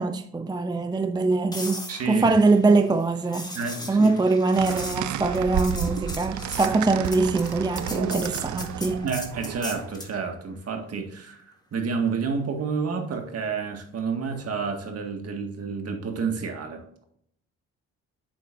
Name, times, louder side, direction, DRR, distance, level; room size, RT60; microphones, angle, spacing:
voice 1, 0.0-3.5 3.9-9.1, right 3 dB, 15° right, 0.5 m, -23 dB
sound 1, 1.5-10.2 14.4-14.6, left 1 dB, 15° left, 1.9 m, -39 dB
voice 2, 1.9-2.3 3.6-4.1 9.0-17.0, right 5 dB, 55° right, 1.9 m, -30 dB
sound 2, 4.6-9.9, right 11 dB, 70° right, 0.6 m, -32 dB
8.5 x 7.5 x 2.6 m
cardioid pair, 90°, 30 cm